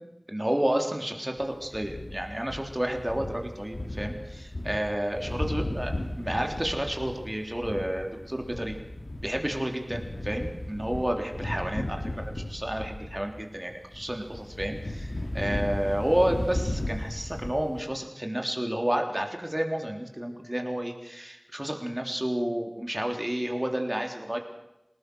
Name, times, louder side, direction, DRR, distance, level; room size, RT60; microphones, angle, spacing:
voice 1, 0.3-8.8 9.2-24.4, right 1 dB, 20° right, 3 dB, 3.5 m, -30 dB
sound 1, 1.4-17.9, left 1 dB, 65° left, 3.0 m, -35 dB
27.0 x 18.5 x 6.4 m, 0.90 s
wide cardioid pair, 50°, 0 cm